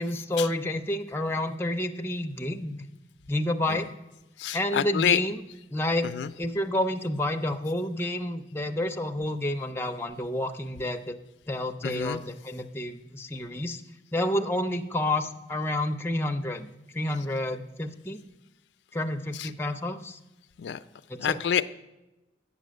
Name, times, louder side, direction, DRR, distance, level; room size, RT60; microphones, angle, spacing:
voice 1, 0.0-2.8 3.3-3.9 4.5-5.4 5.7-6.1 6.4-11.1 11.5-13.8 14.1-16.7 16.9-18.2 18.9-20.2 21.1-21.4, left 1 dB, 15° left, 5 dB, 0.4 m, -29 dB
voice 2, 4.4-5.2 6.1-6.3 11.8-12.2 19.4-19.5 20.6-20.8 21.2-21.6, left 8 dB, 80° left, 12 dB, 0.3 m, -27 dB
8.6 x 6.7 x 6.3 m, 1.0 s
head